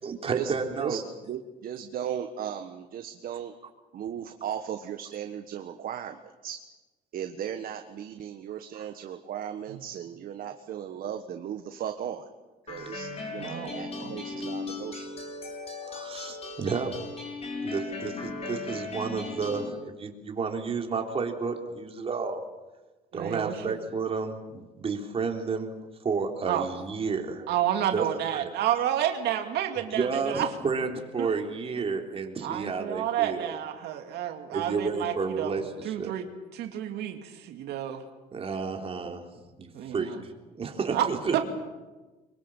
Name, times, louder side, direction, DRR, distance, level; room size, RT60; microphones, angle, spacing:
voice 1, 0.0-1.0 8.7-8.9 12.8-13.0 15.8-16.9 17.6-22.4 23.1-25.7 26.0-27.5 27.9-28.1 28.3-28.5 29.9-33.5 34.5-36.1 38.3-39.3 39.6-41.4, right 5 dB, 35° right, 3 dB, 3.7 m, -31 dB
voice 2, 1.3-3.5 3.9-6.2 6.4-6.6 7.1-12.3 12.7-15.1, right 9 dB, 60° right, 7 dB, 1.6 m, -36 dB
sound 1, 12.7-19.7, left 3 dB, 35° left, 6.2 m, -37 dB
voice 3, 13.3-14.2 23.1-23.7 26.5-26.7 27.5-30.5 31.2-31.3 32.4-38.0 39.7-40.2 40.9-41.0 41.3-41.4, right 11 dB, 80° right, 5 dB, 2.4 m, -30 dB
24.0 x 24.0 x 7.4 m, 1.2 s
cardioid pair, 110°, 17 cm